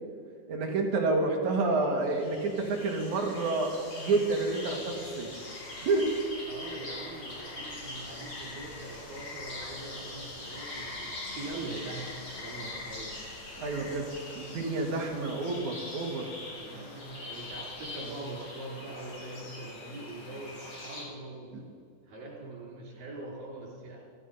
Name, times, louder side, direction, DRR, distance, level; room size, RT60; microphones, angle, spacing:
voice 1, 0.5-5.3 5.8-6.2 13.6-14.1 14.4-16.3 21.5-21.6, right 3 dB, 60° right, 1 dB, 3.1 m, -29 dB
sound 1, 1.5-21.0, left 2 dB, 35° left, 4.0 m, -42 dB
voice 2, 6.5-13.1 16.6-21.5 22.1-24.0, right 2 dB, 85° right, -2 dB, 5.9 m, -42 dB
15.5 x 14.5 x 5.6 m, 2.3 s
omnidirectional pair, 4.0 m